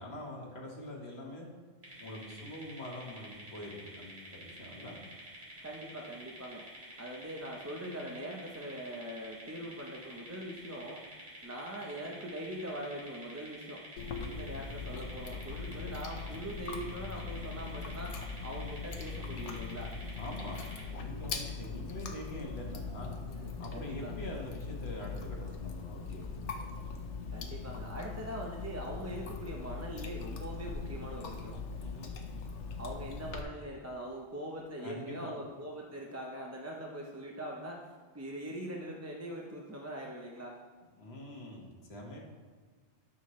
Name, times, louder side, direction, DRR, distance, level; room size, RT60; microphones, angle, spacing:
voice 1, 0.0-1.5 2.0-5.0 20.2-20.6 20.9-23.1 23.6-26.9 31.8-32.1 34.8-35.3 41.0-42.2, left 1 dB, 65° left, -2 dB, 1.7 m, -44 dB
sound 1, 1.8-20.9, right 1 dB, 60° right, 2.6 m, -50 dB
voice 2, 5.6-6.6 7.0-11.0 11.4-19.9 23.3-24.3 27.3-31.6 32.8-40.6, right 1 dB, 15° right, -1 dB, 0.7 m, -42 dB
Chewing mastication, 14.0-33.4, left 4 dB, 85° left, 1.2 m, -41 dB
13.0 x 6.3 x 3.2 m, 1.4 s
omnidirectional pair, 1.2 m